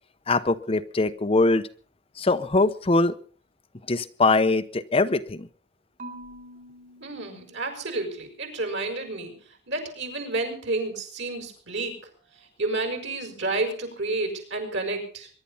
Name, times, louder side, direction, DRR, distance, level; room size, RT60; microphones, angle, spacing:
voice 1, 0.3-1.7 2.2-3.1 3.9-5.5, left 3 dB, 30° left, 11 dB, 0.7 m, -22 dB
Marimba xylophone / Wood, 6.0-8.2, right 1 dB, 45° right, 3.4 m, -45 dB
voice 2, 7.0-9.3 9.7-12.0 12.6-15.3, right 2 dB, 65° right, 5 dB, 5.7 m, -30 dB
23.0 x 11.5 x 5.5 m, 0.43 s
head